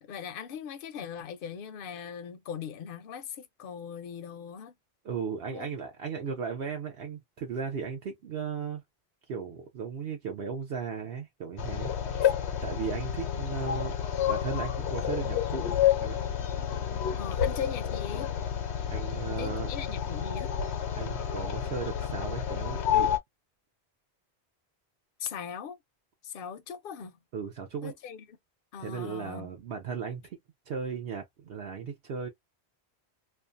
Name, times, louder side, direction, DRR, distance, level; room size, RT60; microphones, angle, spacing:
voice 1, 0.0-4.7 5.5-5.7 12.1-12.3 17.2-18.3 19.4-20.5 25.2-25.8 26.2-27.2 27.8-28.4 28.7-29.5, left 7 dB, 65° left, 0.7 m, -39 dB
voice 2, 5.0-8.8 9.3-11.9 12.6-15.7 16.0-16.2 18.9-19.7 20.9-23.1 27.3-27.9 28.8-30.4 30.7-32.3, right 6 dB, 65° right, 0.8 m, -36 dB
sound 1, 11.6-23.2, left 9 dB, 90° left, 0.9 m, -30 dB
2.5 x 2.2 x 2.5 m
omnidirectional pair, 1.1 m